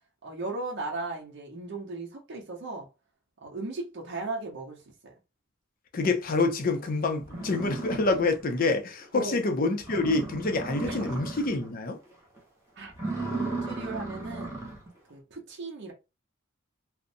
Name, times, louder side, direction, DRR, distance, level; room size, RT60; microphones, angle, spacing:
voice 1, 0.2-2.9 3.4-5.1 9.1-9.4 10.8-11.2 12.8-12.9 13.2-14.6 15.1-15.9, right 3 dB, 60° right, 0.7 m, -37 dB
voice 2, 5.9-12.0, left 3 dB, 45° left, 0.5 m, -27 dB
sound 1, 6.8-6.9 7.2-8.6 9.0-9.1 9.5-9.6 9.8-11.7 12.1-12.4 12.9-14.9, right 3 dB, 15° right, 0.8 m, -36 dB
2.5 x 2.1 x 2.6 m
head